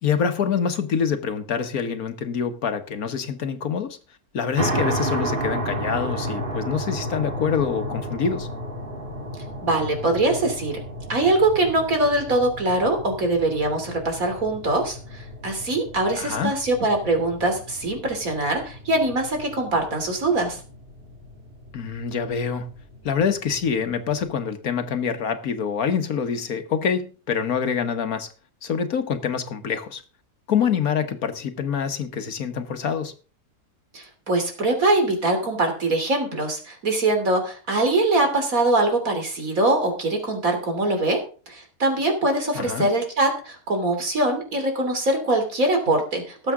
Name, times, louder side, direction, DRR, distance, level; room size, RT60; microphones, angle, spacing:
voice 1, 0.0-4.0 4.3-8.5 16.2-16.5 21.7-22.7 23.0-28.3 28.6-30.0 30.5-33.1 42.5-42.9, left 7 dB, 70° left, 1.6 m, -25 dB
sound 1, 4.6-24.3, right 1 dB, 35° right, 2.0 m, -33 dB
voice 2, 9.6-10.8 11.1-20.6 33.9-41.2 41.5-46.5, right 2 dB, 65° right, 3.5 m, -23 dB
18.5 x 7.8 x 3.7 m
omnidirectional pair, 1.6 m